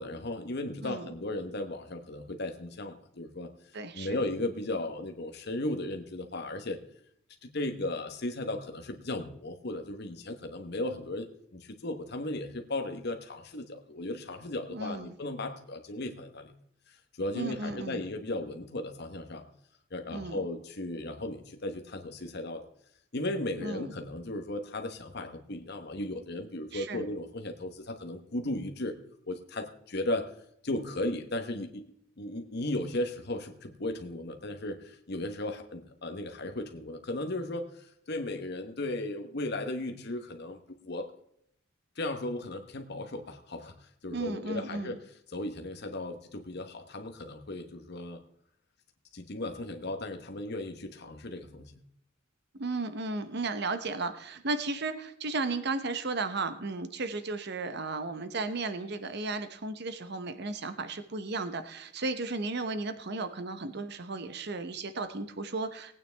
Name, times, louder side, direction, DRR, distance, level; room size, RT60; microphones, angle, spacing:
voice 1, 0.0-3.5 3.9-6.8 7.4-11.3 11.5-16.5 17.2-19.4 19.9-22.7 23.1-29.0 29.3-30.3 30.6-31.8 32.2-41.1 42.0-43.7 44.0-45.0 45.3-48.2 49.1-51.8, left 1 dB, 55° left, 5 dB, 1.1 m, -36 dB
voice 2, 3.7-4.2 14.7-15.1 17.3-18.0 20.1-20.4 23.6-23.9 26.7-27.0 44.1-45.0 52.6-65.9, right 3 dB, 55° right, 10 dB, 0.9 m, -34 dB
18.5 x 9.2 x 3.4 m, 0.70 s
head